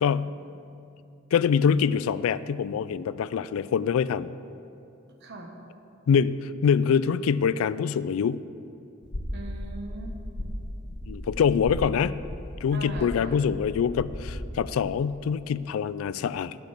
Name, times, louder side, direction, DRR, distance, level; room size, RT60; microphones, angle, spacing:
voice 1, 1.3-4.3 6.1-8.4 11.1-12.2 12.6-16.6, left 7 dB, 80° left, 17 dB, 0.3 m, -24 dB
voice 2, 5.2-5.5 9.3-10.5 12.7-13.4, right 2 dB, 55° right, 2 dB, 1.3 m, -41 dB
sound 1, 9.0-14.4, left 1 dB, 60° left, 1.2 m, -36 dB
9.9 x 6.2 x 8.3 m, 2.7 s
head